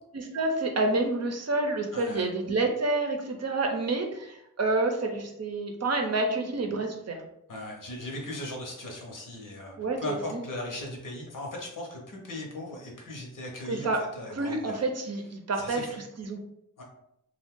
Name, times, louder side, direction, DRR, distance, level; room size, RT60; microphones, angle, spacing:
voice 1, 0.1-7.2 9.8-10.2 13.7-14.0 14.3-15.9 16.2-16.4, right 2 dB, 50° right, 3 dB, 0.6 m, -28 dB
voice 2, 1.9-2.2 7.5-14.8 15.6-16.0 16.8-16.9, left 1 dB, 70° left, 0 dB, 0.9 m, -38 dB
2.6 x 2.3 x 3.6 m, 0.79 s
cardioid pair, 70°, 33 cm